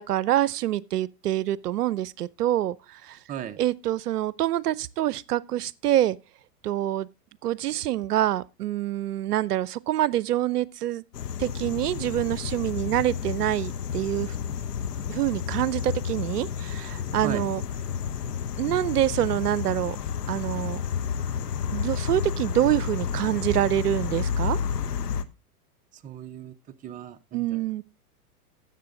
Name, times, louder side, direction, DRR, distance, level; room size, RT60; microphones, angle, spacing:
voice 1, 0.0-3.2 3.6-6.2 6.6-7.1 7.4-11.0 11.4-14.4 15.1-17.6 18.6-20.0 20.3-20.8 21.7-24.6 27.3-27.8, right 13 dB, 80° right, 0.6 m, -26 dB
voice 2, 3.3-3.6 17.2-17.5 25.9-26.6 26.8-27.6, right 10 dB, 15° right, 0.6 m, -36 dB
sound 1, 11.1-25.2, left 7 dB, 85° left, 1.1 m, -31 dB
13.0 x 7.5 x 3.8 m
hypercardioid pair, 110°, 47 cm